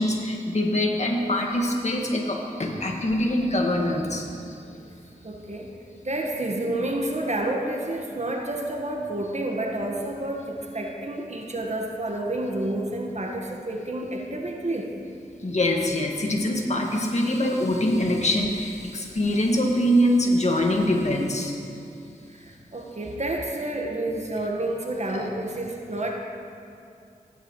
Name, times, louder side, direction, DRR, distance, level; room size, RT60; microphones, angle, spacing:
voice 1, 0.0-4.6 15.4-21.6 25.1-25.3, left 1 dB, 45° left, 0 dB, 1.8 m, -24 dB
voice 2, 5.2-5.7 6.0-14.9 22.3-26.1, right 1 dB, 45° right, 0 dB, 1.5 m, -29 dB
15.5 x 9.8 x 3.2 m, 2.5 s
cardioid pair, 45°, 16 cm